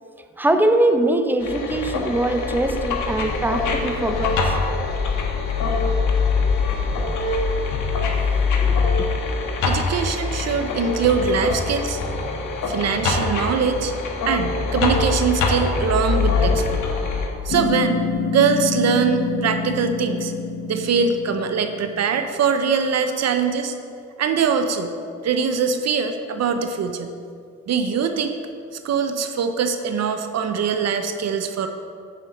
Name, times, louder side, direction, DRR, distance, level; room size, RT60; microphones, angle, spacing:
voice 1, 0.4-4.3 7.0-7.1 8.6-9.1, right 1 dB, 5° right, 0.8 m, -22 dB
sound 1, 1.4-17.3, left 4 dB, 80° left, 1.4 m, -23 dB
voice 2, 9.7-12.0 12.7-13.9 14.3-16.8 17.4-18.0 18.3-20.3 20.7-23.7 24.2-24.9 25.2-27.1 27.7-28.4 28.8-31.7, right 6 dB, 60° right, 0.8 m, -22 dB
sound 2, 17.5-22.1, left 4 dB, 60° left, 1.1 m, -27 dB
7.3 x 6.5 x 7.6 m
cardioid pair, 90°, 30 cm